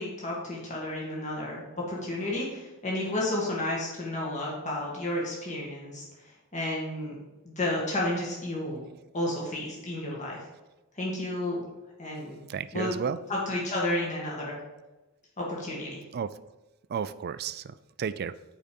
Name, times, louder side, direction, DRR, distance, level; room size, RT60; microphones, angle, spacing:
voice 1, 0.0-6.0 6.5-7.2 7.4-8.8 9.1-10.4 11.0-11.6 12.0-12.4 12.7-13.0 13.3-14.6 15.4-16.0, left 1 dB, 35° left, -4 dB, 2.0 m, -31 dB
voice 2, 12.5-13.2 16.1-16.3 16.9-18.3, right 7 dB, 45° right, 15 dB, 0.4 m, -32 dB
8.8 x 5.0 x 5.4 m, 1.1 s
head